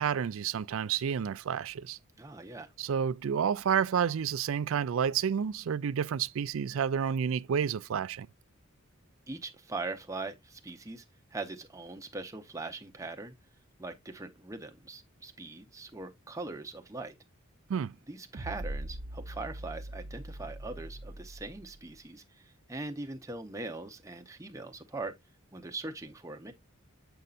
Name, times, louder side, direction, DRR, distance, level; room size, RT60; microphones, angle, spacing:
voice 1, 0.0-2.0 2.8-8.3 17.7-18.0, right 7 dB, 70° right, 0.4 m, -30 dB
voice 2, 2.2-2.7 9.3-11.0 11.3-13.3 13.8-17.1 18.1-25.1 25.5-26.5, right 3 dB, 15° right, 0.8 m, -41 dB
sound 1, 18.3-21.8, right 1 dB, 50° right, 0.7 m, -41 dB
7.8 x 5.4 x 2.4 m
head